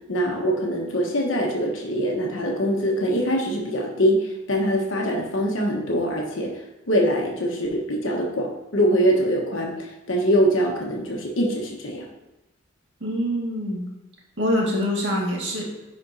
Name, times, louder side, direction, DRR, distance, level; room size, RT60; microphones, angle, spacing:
voice 1, 0.1-6.5 6.9-12.0, equal, 75° left, -1 dB, 1.2 m, -23 dB
voice 2, 13.0-13.8 14.4-15.7, equal, 60° right, -3 dB, 1.9 m, -24 dB
10.5 x 4.3 x 2.8 m, 0.98 s
head